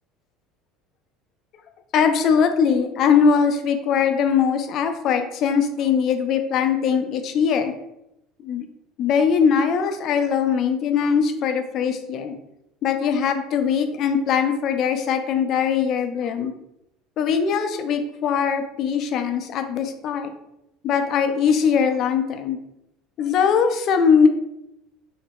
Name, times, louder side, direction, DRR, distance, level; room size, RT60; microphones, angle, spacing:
voice 1, 1.9-7.7 8.4-8.7 9.0-12.3 12.8-16.5 17.2-20.3 20.8-22.6 23.2-24.3, left 6 dB, 45° left, 7 dB, 0.3 m, -21 dB
3.1 x 2.2 x 2.8 m, 0.86 s
cardioid pair, 145°, 0 cm